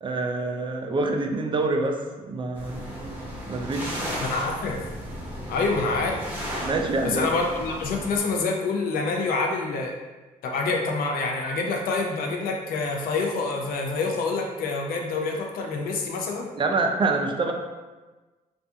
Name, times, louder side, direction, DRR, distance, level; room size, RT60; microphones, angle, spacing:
voice 1, 0.0-2.9 3.5-3.9 6.6-7.2 16.6-17.5, right 3 dB, 35° right, 3 dB, 0.3 m, -26 dB
sound 1, 2.5-8.2, equal, 10° right, 0.8 m, -34 dB
voice 2, 4.2-4.8 5.5-6.2 7.0-9.9 10.4-16.5, left 3 dB, 80° left, 1 dB, 0.5 m, -27 dB
2.4 x 2.3 x 2.6 m, 1.2 s
cardioid pair, 85°, 15 cm